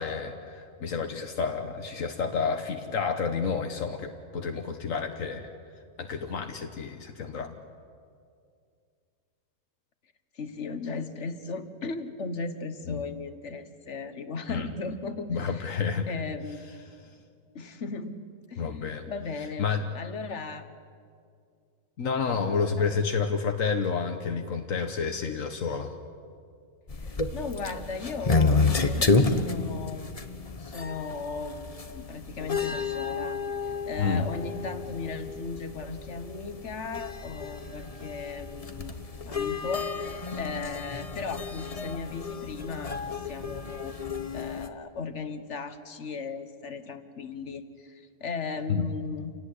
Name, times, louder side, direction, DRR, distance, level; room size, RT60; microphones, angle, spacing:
voice 1, 0.0-5.5 6.0-7.6 12.9-13.0 14.5-14.7 15.3-16.1 18.6-19.1 19.6-19.8 22.0-25.9 34.0-34.2 48.7-48.9, left 5 dB, 80° left, 5 dB, 1.6 m, -30 dB
voice 2, 10.3-15.7 16.1-16.7 17.5-18.2 18.5-18.7 19.1-19.7 19.9-20.7 22.8-23.0 26.9-30.1 30.6-39.0 39.2-43.9 44.3-49.3, left 4 dB, 60° left, 10 dB, 1.6 m, -37 dB
sound 1, 26.9-44.7, left 4 dB, 30° left, 1.2 m, -30 dB
28.5 x 17.5 x 9.9 m, 2.3 s
omnidirectional pair, 1.4 m